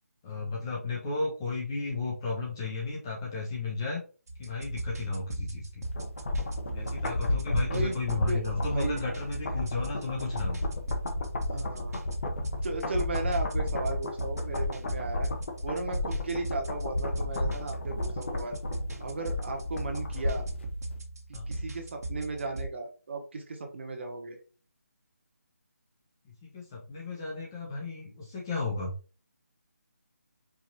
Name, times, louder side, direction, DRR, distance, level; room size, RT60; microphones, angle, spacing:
voice 1, 0.2-4.0 4.4-5.8 6.7-10.6 21.3-21.5 26.2-28.9, left 3 dB, 15° left, -2 dB, 0.5 m, -34 dB
sound 1, 4.3-22.7, right 1 dB, 75° right, 1.3 m, -38 dB
sound 2, 5.9-20.6 20.9-21.0, left 2 dB, 45° left, 0.9 m, -33 dB
voice 2, 6.5-7.0 7.7-9.0 9.4-9.5 11.5-12.0 12.6-15.3 15.6-18.6 19.0-20.5 21.5-24.4, right 3 dB, 45° right, 3 dB, 1.1 m, -36 dB
4.7 x 2.8 x 2.7 m, 0.35 s
figure-of-eight pair, 170°, 9 cm